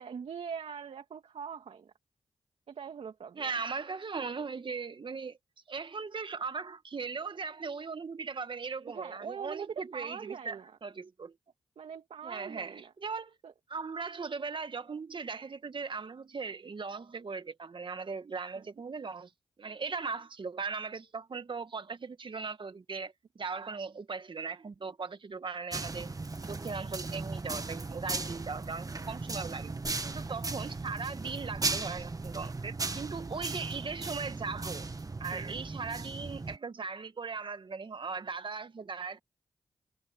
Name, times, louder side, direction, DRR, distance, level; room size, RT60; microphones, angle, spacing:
voice 1, 0.0-1.9 2.7-3.5 8.9-10.8 11.8-12.9 13.4-13.5 18.5-18.7 29.4-29.8 30.5-30.6 35.3-35.6, right 7 dB, 70° right, 2.4 m, -42 dB
voice 2, 3.4-5.4 5.7-11.3 12.2-13.4 13.7-19.3 19.6-26.1 26.4-29.7 30.0-34.9 35.2-39.2, right 5 dB, 50° right, 1.9 m, -38 dB
sound 1, 25.7-36.6, right 3 dB, 35° right, 1.6 m, -37 dB
supercardioid pair, 40°, 10 cm